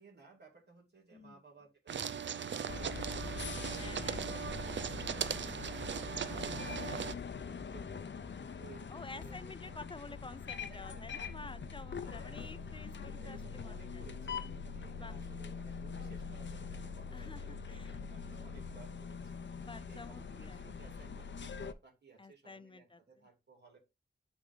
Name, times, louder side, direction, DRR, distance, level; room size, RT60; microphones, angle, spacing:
voice 1, 0.0-3.7 4.1-8.1 8.6-10.0 10.7-11.5 12.0-12.7 13.2-23.8, right 5 dB, 65° right, 2.4 m, -59 dB
sound 1, 1.9-7.1, right 7 dB, 90° right, 0.5 m, -38 dB
sound 2, 2.7-21.7, left 5 dB, 85° left, 0.7 m, -43 dB
voice 2, 3.7-4.4 6.2-7.3 8.9-14.0 15.0-15.2 17.1-18.0 19.5-20.6 22.2-23.0, left 3 dB, 30° left, 0.5 m, -50 dB
9.7 x 3.6 x 3.8 m
wide cardioid pair, 90°, 19 cm